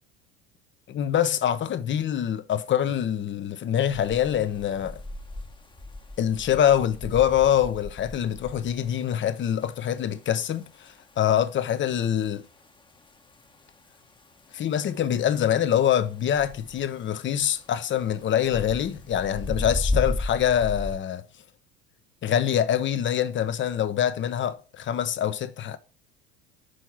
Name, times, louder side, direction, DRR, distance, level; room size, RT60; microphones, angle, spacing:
voice 1, 0.9-5.0 6.2-12.4 14.5-21.2 22.2-25.8, left 10 dB, 35° left, 0.8 m, -25 dB
sound 1, 3.9-21.0, left 2 dB, 15° left, 1.1 m, -36 dB
6.5 x 4.5 x 5.7 m
hypercardioid pair, 75°, 31 cm